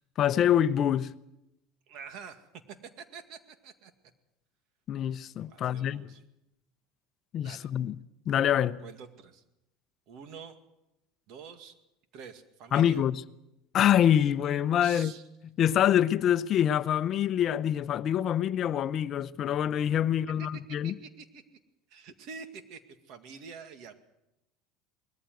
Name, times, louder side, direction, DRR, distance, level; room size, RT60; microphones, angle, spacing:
voice 1, 0.2-1.1 4.9-6.1 7.3-8.0 8.3-8.8 12.7-13.2 13.7-15.1 15.6-20.9, left 10 dB, 40° left, 0.7 m, -25 dB
voice 2, 1.9-2.5 2.8-3.9 5.5-6.2 7.4-7.7 8.8-9.4 10.1-10.6 11.3-11.8 12.1-13.0 14.8-15.2 20.8-21.4 21.9-23.9, right 6 dB, 60° right, 2.1 m, -46 dB
20.0 x 14.5 x 9.3 m
supercardioid pair, 125°, 0 cm